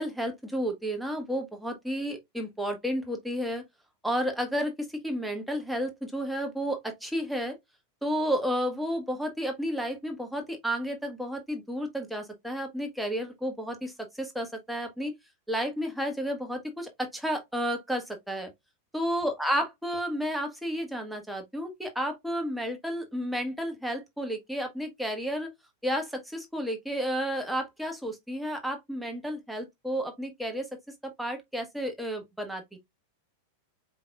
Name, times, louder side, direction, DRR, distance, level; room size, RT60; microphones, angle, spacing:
voice 1, 0.0-3.6 4.0-7.5 8.0-15.1 15.5-18.5 18.9-25.5 25.8-30.7 31.2-32.8, equal, ahead, 1.3 m, -32 dB
4.7 x 4.0 x 2.4 m
figure-of-eight pair, 90°, 0 cm